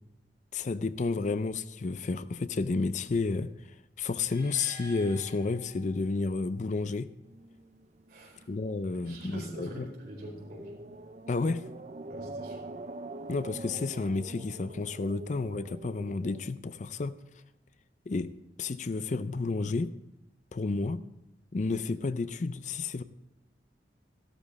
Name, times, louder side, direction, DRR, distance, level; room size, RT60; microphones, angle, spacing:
voice 1, 0.5-7.1 8.5-9.9 11.3-11.7 13.3-17.2 18.1-18.3 18.6-19.9 20.5-21.0 21.5-23.0, left 3 dB, 45° left, 13 dB, 0.4 m, -31 dB
sound 1, 4.2-6.4, left 3 dB, 70° left, 3.4 m, -49 dB
sound 2, 7.2-16.5, right 2 dB, 40° right, 0.6 m, -45 dB
voice 2, 8.1-8.5 8.9-10.8 12.1-12.7, equal, 60° right, -1 dB, 4.6 m, -44 dB
14.5 x 12.5 x 4.1 m, 0.88 s
head